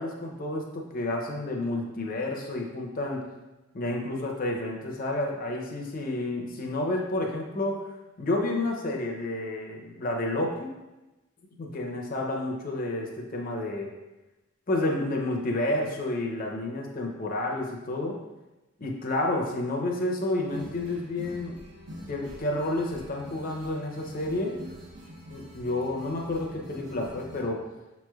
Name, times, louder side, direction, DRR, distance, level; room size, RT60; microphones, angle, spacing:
voice 1, 0.0-3.2 3.7-7.7 8.2-10.7 11.5-13.9 14.7-18.2 18.8-21.6 22.1-24.6 25.3-27.6, left 2 dB, 45° left, 0 dB, 0.6 m, -30 dB
sound 1, 20.4-27.4, equal, 60° right, 1.1 m, -45 dB
6.7 x 3.1 x 2.3 m, 1.1 s
head